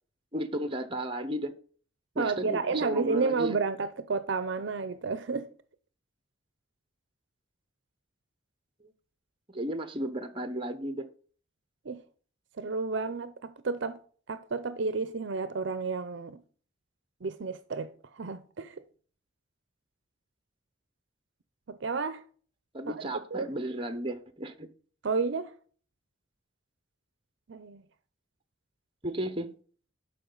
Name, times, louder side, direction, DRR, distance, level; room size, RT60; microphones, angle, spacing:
voice 1, 0.3-1.5 2.2-3.6 8.8-8.9 9.5-11.1 22.7-24.7 29.0-29.5, right 1 dB, 25° right, 0.9 m, -34 dB
voice 2, 2.2-5.5 11.8-12.0 12.6-14.0 14.3-16.4 17.2-18.8 21.7-22.2 22.9-23.0 23.3-23.5 25.0-25.5 27.5-27.8, right 4 dB, 65° right, 0.5 m, -31 dB
12.0 x 4.8 x 3.9 m
head